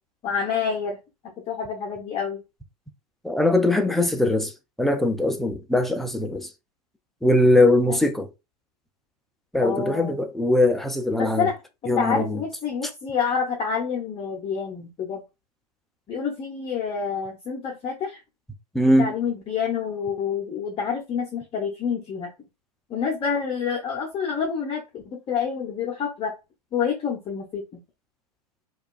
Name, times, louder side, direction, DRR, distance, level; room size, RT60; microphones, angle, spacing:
voice 1, 0.2-1.0 1.5-2.4 7.9-8.0 9.6-10.2 11.2-11.5 11.8-15.2 16.1-18.2 19.0-22.3 22.9-26.3 26.7-27.6, left 6 dB, 25° left, 0.9 m, -28 dB
voice 2, 3.2-4.5 4.8-6.5 7.2-8.3 9.5-11.5 11.9-12.4 18.7-19.1, left 1 dB, ahead, 0.4 m, -21 dB
4.4 x 2.5 x 2.4 m
figure-of-eight pair, 95°, 21 cm